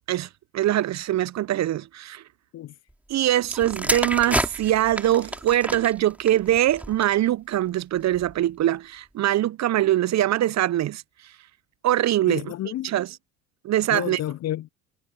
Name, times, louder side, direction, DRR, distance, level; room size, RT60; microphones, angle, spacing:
voice 1, 0.5-2.2 3.1-11.0 11.8-12.5 12.8-13.1 13.6-14.2, right 13 dB, 35° right, 1.0 m, -23 dB
sound 1, 3.4-7.3 8.1-8.3, right 1 dB, 5° right, 3.3 m, -30 dB
voice 2, 12.3-12.9 13.9-14.7, left 13 dB, 35° left, 0.8 m, -30 dB
figure-of-eight pair, 70°, 46 cm